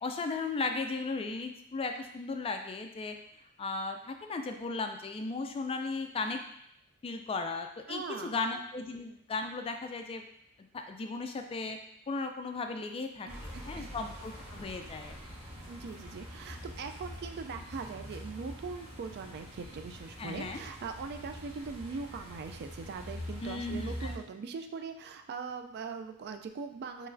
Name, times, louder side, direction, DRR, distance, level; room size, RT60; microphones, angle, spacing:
voice 1, 0.0-3.2 3.6-6.4 7.0-10.2 10.7-11.8 12.1-15.2 20.2-20.6 23.4-24.1, left 3 dB, 25° left, 5 dB, 0.3 m, -36 dB
voice 2, 7.9-8.4 13.2-13.9 15.7-27.1, right 5 dB, 50° right, 7 dB, 0.3 m, -41 dB
sound 1, 13.3-24.2, equal, 90° right, 1.6 m, -44 dB
5.5 x 3.1 x 2.5 m, 0.73 s
head